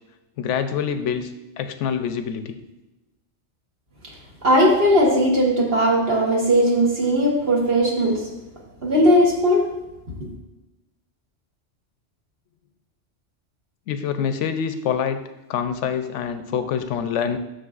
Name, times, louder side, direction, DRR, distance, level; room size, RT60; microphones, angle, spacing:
voice 1, 0.4-1.3 1.6-2.6 13.9-15.2 15.5-17.4, left 7 dB, 85° left, 9 dB, 0.9 m, -25 dB
voice 2, 4.4-8.2 8.8-9.7, equal, 55° right, -3 dB, 1.4 m, -18 dB
9.0 x 6.4 x 2.4 m, 1.0 s
omnidirectional pair, 1.2 m